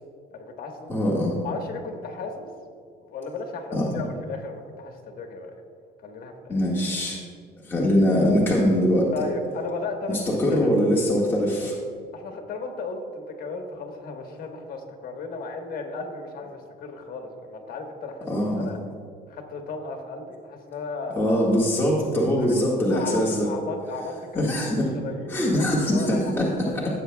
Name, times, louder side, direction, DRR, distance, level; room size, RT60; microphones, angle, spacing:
voice 1, 0.3-0.9 1.4-2.5 3.0-5.5 6.0-6.6 9.1-10.7 11.2-11.3 12.1-18.3 18.6-18.8 19.3-21.2 22.4-22.5 22.9-24.6 24.9-26.3 26.6-27.0, left 3 dB, 60° left, 4 dB, 1.4 m, -35 dB
voice 2, 0.9-1.4 3.7-4.0 6.5-7.2 7.6-9.1 10.1-11.8 18.3-18.7 21.2-23.5 24.3-24.9 25.3-27.0, equal, 15° left, -6 dB, 1.7 m, -22 dB
16.0 x 7.5 x 2.3 m, 2.2 s
cardioid pair, 110°, 17 cm